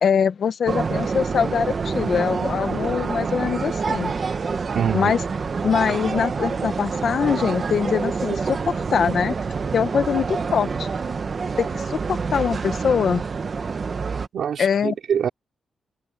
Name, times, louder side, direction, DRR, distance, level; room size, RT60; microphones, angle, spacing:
voice 1, 0.0-4.1 4.9-5.2 5.6-9.4 9.7-10.9 11.6-13.2 14.6-14.9, left 7 dB, 55° left, 1.4 m, -23 dB
Market environment, 0.7-14.3, right 5 dB, 35° right, 1.0 m, -27 dB
voice 2, 4.7-5.1 14.3-15.3, right 8 dB, 70° right, 2.8 m, -24 dB
wide cardioid pair, 155°, 0 cm